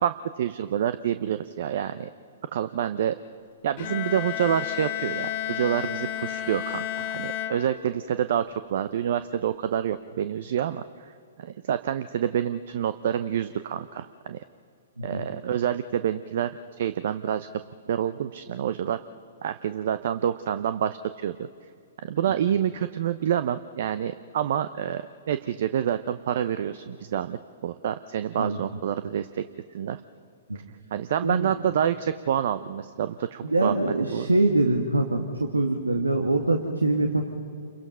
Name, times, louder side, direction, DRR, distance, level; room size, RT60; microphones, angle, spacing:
voice 1, 0.0-2.1 2.5-3.2 3.6-10.8 11.4-14.4 15.0-16.5 16.8-17.5 17.9-19.0 19.4-21.5 22.0-29.4 29.7-30.0 30.9-34.3, right 9 dB, 55° right, 12 dB, 0.7 m, -27 dB
Bowed string instrument, 3.8-8.2, left 11 dB, 45° left, 1.7 m, -32 dB
voice 2, 33.4-37.3, right 2 dB, 90° right, 4 dB, 1.7 m, -24 dB
29.0 x 23.0 x 5.6 m, 2.3 s
figure-of-eight pair, 115°, 0 cm